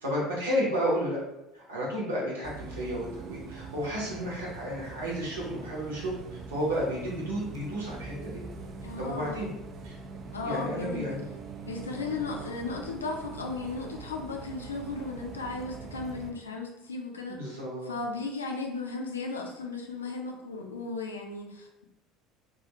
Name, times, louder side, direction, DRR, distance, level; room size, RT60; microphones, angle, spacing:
voice 1, 0.0-1.2 1.5-8.4 9.0-9.5 9.8-9.9 10.4-11.3 17.3-17.9, equal, 75° right, -5 dB, 0.9 m, -32 dB
Bus, 2.4-16.3, right 4 dB, 40° right, 0.4 m, -43 dB
voice 2, 8.8-9.5 10.3-11.1 11.6-17.6 17.8-21.8, left 3 dB, 80° left, 1 dB, 0.4 m, -36 dB
2.5 x 2.3 x 2.8 m, 0.92 s
figure-of-eight pair, 65°, 0 cm